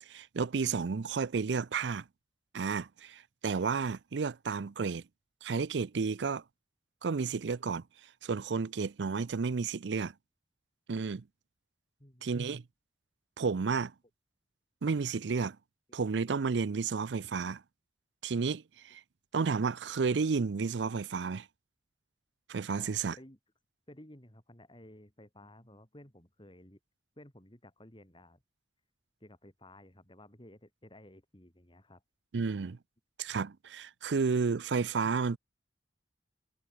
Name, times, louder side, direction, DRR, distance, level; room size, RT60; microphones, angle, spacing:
voice 1, 0.1-2.0 2.5-5.0 5.4-6.4 7.0-7.8 8.2-10.1 10.9-11.2 12.2-12.6 13.4-13.9 14.8-15.6 15.9-17.6 18.2-19.0 19.3-21.5 22.5-23.1 32.3-32.8 33.2-35.4, right 5 dB, 85° right, 0.5 m, -32 dB
voice 2, 12.0-12.3 15.9-16.0 22.8-23.4 23.9-26.8 27.2-28.4 29.2-32.0, left 1 dB, 30° left, 5.4 m, -55 dB
head